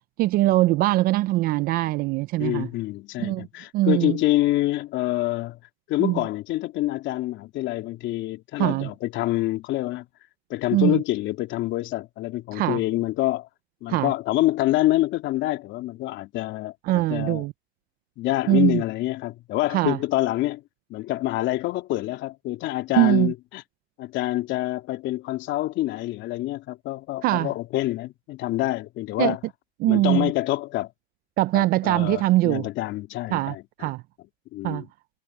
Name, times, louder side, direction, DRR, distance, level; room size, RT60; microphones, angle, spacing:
voice 1, 0.2-2.7 3.2-3.5 3.7-4.2 6.0-6.2 8.6-8.9 10.7-11.0 12.5-12.8 13.9-14.1 16.9-17.5 18.5-18.8 19.7-20.0 22.9-23.3 27.2-27.5 29.2-29.4 29.8-30.3 31.4-32.7 33.3-34.0 34.6-34.8, right 17 dB, 25° right, 0.5 m, -22 dB
voice 2, 2.4-5.6 5.9-10.0 10.5-13.5 13.8-17.5 18.2-20.6 20.9-23.6 24.0-29.4 29.9-30.9 31.5-33.9 34.5-34.9, left 16 dB, 35° left, 2.9 m, -26 dB
hypercardioid pair, 130°, 33 cm